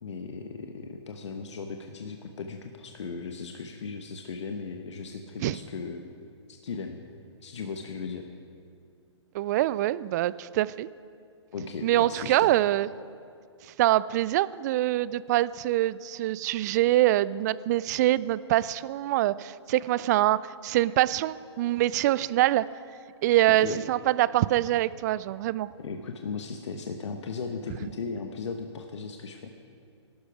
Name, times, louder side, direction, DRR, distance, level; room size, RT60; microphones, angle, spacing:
voice 1, 0.0-6.1 6.5-7.0 7.4-8.2 11.5-12.5 23.6-23.8 25.8-29.5, left 5 dB, 75° left, 4 dB, 1.1 m, -37 dB
voice 2, 9.3-10.9 11.8-12.9 13.8-22.6 23.2-25.7, right 15 dB, 35° right, 19 dB, 0.3 m, -24 dB
17.5 x 12.5 x 4.9 m, 2.4 s
hypercardioid pair, 135°, 15 cm